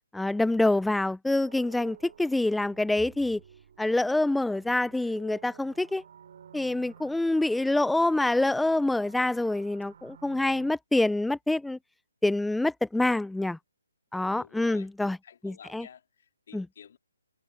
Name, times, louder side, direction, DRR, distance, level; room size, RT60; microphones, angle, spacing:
voice 1, 0.1-3.4 3.8-6.0 6.5-11.8 12.2-13.6 14.1-15.2 15.4-15.9 16.5-16.7, left 2 dB, ahead, 0.3 m, -26 dB
sound 1, 1.4-10.7, right 8 dB, 45° right, 4.1 m, -53 dB
voice 2, 14.3-14.9 15.2-17.0, left 8 dB, 40° left, 3.3 m, -51 dB
hypercardioid pair, 175°, 0 cm